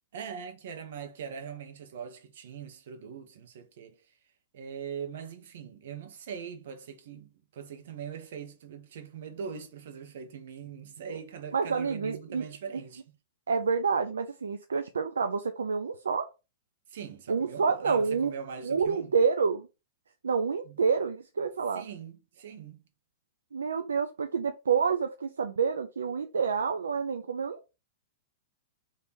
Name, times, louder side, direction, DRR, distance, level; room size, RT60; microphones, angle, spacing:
voice 1, 0.1-4.1 4.5-13.2 16.9-19.2 20.6-20.8 21.7-22.8, right 7 dB, 65° right, 1.0 m, -42 dB
voice 2, 11.5-12.4 13.5-16.3 17.3-18.3 18.6-19.7 20.2-21.9 23.5-27.7, right 5 dB, 85° right, 0.4 m, -28 dB
3.4 x 2.9 x 4.5 m
hypercardioid pair, 110°, 0 cm